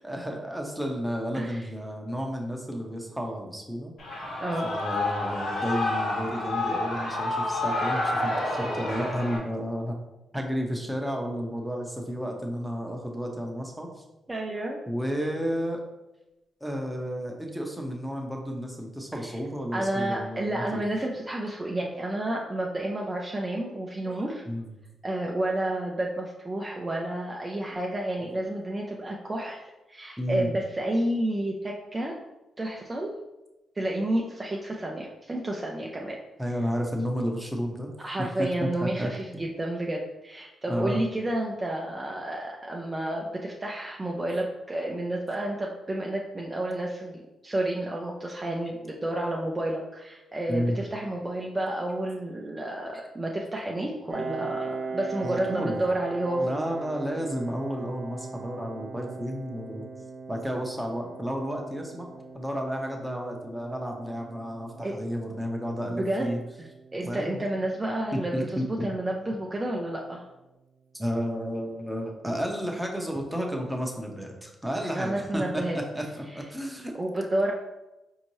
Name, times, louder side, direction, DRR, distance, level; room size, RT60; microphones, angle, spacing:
voice 1, 0.0-3.9 4.6-9.9 10.3-13.9 14.9-15.8 16.6-20.8 24.0-24.7 28.2-28.3 30.2-30.5 36.4-37.9 38.4-39.4 40.7-41.0 50.5-50.8 55.2-55.8 56.4-59.9 60.3-62.1 62.3-66.4 67.0-67.4 68.3-68.9 70.9-76.9, equal, 5° right, 0 dB, 0.8 m, -32 dB
Shout / Cheering, 4.0-9.4, left 2 dB, 75° left, 1.2 m, -29 dB
voice 2, 14.3-14.8 19.3-19.4 19.7-24.4 25.0-29.6 29.9-32.1 32.6-33.1 33.8-36.2 38.0-56.6 64.8-64.9 66.0-66.4 66.9-70.3 75.0-75.8 76.9-77.5, right 1 dB, 25° right, -1 dB, 0.5 m, -30 dB
Piano, 54.1-69.5, right 4 dB, 50° right, 0.9 m, -41 dB
4.3 x 2.7 x 3.0 m, 0.99 s
supercardioid pair, 60°, 0 cm